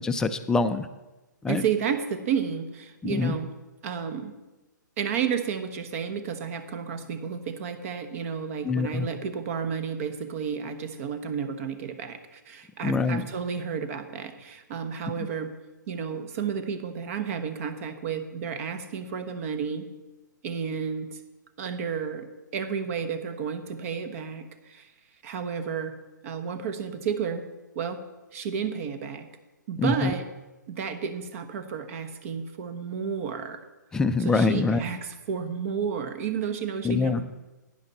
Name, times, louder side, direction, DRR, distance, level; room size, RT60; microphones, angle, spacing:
voice 1, 0.0-0.9 1.4-1.6 3.0-3.4 8.6-9.1 12.8-13.3 29.8-30.1 33.9-34.8 36.8-37.2, left 4 dB, 5° left, 8 dB, 0.4 m, -24 dB
voice 2, 1.5-3.5 3.8-4.3 5.0-15.5 15.9-19.8 20.4-21.2 21.6-22.3 22.5-24.9 25.2-25.9 26.2-27.4 27.7-28.0 28.3-29.3 29.7-30.3 30.7-33.6 34.2-37.2, right 7 dB, 45° right, 9 dB, 1.2 m, -31 dB
11.5 x 9.6 x 4.2 m, 1.1 s
hypercardioid pair, 135°, 10 cm